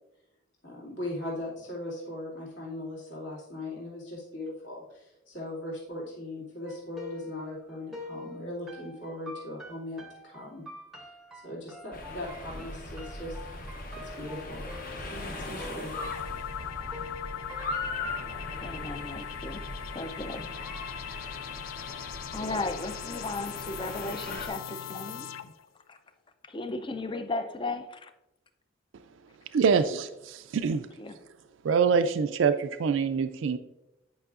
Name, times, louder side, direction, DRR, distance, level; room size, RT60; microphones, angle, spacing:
voice 1, 0.6-10.6 11.0-11.1 11.4-13.7 14.1-14.6 15.1-15.9, left 1 dB, 65° left, -6 dB, 2.4 m, -39 dB
sound 1, 6.7-18.2, left 1 dB, ahead, 0.8 m, -46 dB
sound 2, 11.9-24.5, left 2 dB, 45° left, 0.9 m, -39 dB
sound 3, 15.9-25.7, left 9 dB, 85° left, 0.4 m, -40 dB
voice 2, 18.6-19.6 19.9-20.5 22.3-25.3 25.9-26.0 26.4-28.1 31.0-31.2, left 2 dB, 25° left, 9 dB, 0.4 m, -35 dB
voice 3, 29.5-30.9 31.6-33.6, right 6 dB, 70° right, 9 dB, 0.4 m, -25 dB
9.3 x 5.4 x 2.4 m, 0.94 s
head